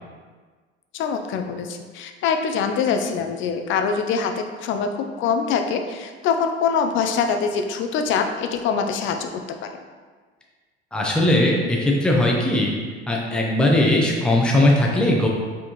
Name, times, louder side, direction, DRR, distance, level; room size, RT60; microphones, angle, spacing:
voice 1, 0.9-9.3 9.6-9.7, left 6 dB, 40° left, 5 dB, 0.5 m, -24 dB
voice 2, 10.9-12.7 13.1-15.3, left 1 dB, 5° left, -2 dB, 0.7 m, -19 dB
4.9 x 3.5 x 3.0 m, 1.5 s
figure-of-eight pair, 70°, 32 cm